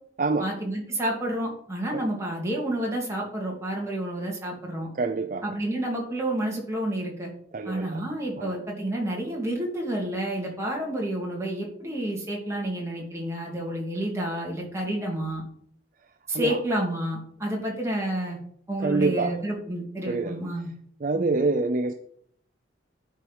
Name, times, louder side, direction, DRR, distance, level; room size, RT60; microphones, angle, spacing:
voice 1, 0.4-4.9 5.4-7.3 7.6-15.4 16.3-18.4 18.7-20.7 21.1-21.3, right 1 dB, 15° right, 2.6 m, -30 dB
voice 2, 5.0-5.4 7.5-7.9 8.4-8.5 16.3-16.6 18.8-19.3 20.1-20.4 21.0-21.9, right 3 dB, 45° right, 0.4 m, -26 dB
12.0 x 4.6 x 5.4 m
head